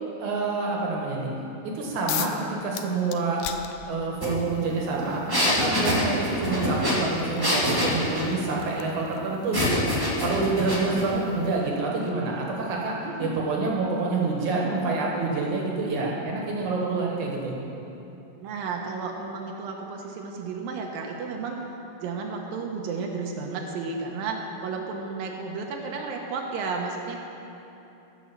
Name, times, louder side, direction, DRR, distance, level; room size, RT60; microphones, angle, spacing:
voice 1, 0.2-1.3 1.6-3.4 3.9-9.8 10.2-17.5, right 3 dB, 65° right, -2 dB, 2.7 m, -27 dB
sound 1, 2.1-2.4 2.7-4.3 5.4-5.5 6.0-12.7, left 12 dB, 80° left, 1.9 m, -39 dB
sound 2, 4.2-4.3 4.6-8.3 9.5-11.1, left 1 dB, 10° right, 1.1 m, -25 dB
voice 2, 13.1-13.4 18.4-21.6 22.0-27.2, right 4 dB, 85° right, 1 dB, 2.7 m, -32 dB
15.0 x 6.2 x 7.4 m, 2.9 s
omnidirectional pair, 4.0 m